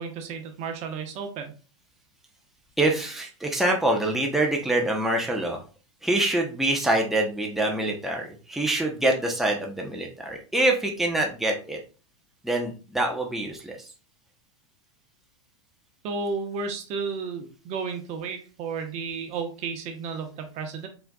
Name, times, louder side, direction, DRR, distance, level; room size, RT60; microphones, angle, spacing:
voice 1, 0.0-1.5 16.0-20.9, right 5 dB, 45° right, 5 dB, 1.0 m, -32 dB
voice 2, 2.8-5.6 6.0-11.8 12.4-13.9, right 1 dB, ahead, 1 dB, 0.8 m, -25 dB
4.4 x 3.9 x 2.3 m, 0.35 s
hypercardioid pair, 110°, 16 cm